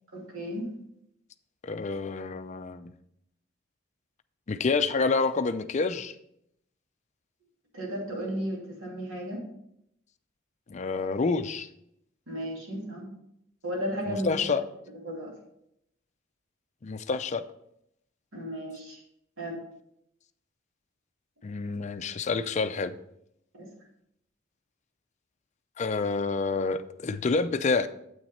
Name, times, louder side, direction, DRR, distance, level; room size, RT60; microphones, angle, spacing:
voice 1, 0.1-0.7 7.7-9.4 12.3-13.1 13.6-14.4 15.0-15.3 18.3-19.0 19.4-19.6 23.5-23.7, equal, 90° right, -2 dB, 2.6 m, -34 dB
voice 2, 1.6-2.9 4.5-6.1 10.7-11.7 14.1-14.6 16.8-17.4 21.4-22.9 25.8-27.9, left 4 dB, 35° left, 10 dB, 0.4 m, -28 dB
8.0 x 6.0 x 4.2 m, 0.76 s
head